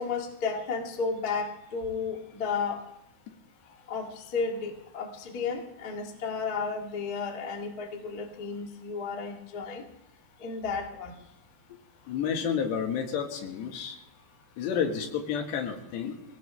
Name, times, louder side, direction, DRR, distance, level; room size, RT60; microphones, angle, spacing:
voice 1, 0.0-2.8 3.9-9.8 10.4-11.1, left 5 dB, 45° left, 2 dB, 1.2 m, -33 dB
voice 2, 12.1-14.0 14.6-16.2, left 7 dB, 75° left, 4 dB, 3.7 m, -30 dB
23.5 x 17.5 x 3.4 m, 0.86 s
omnidirectional pair, 5.1 m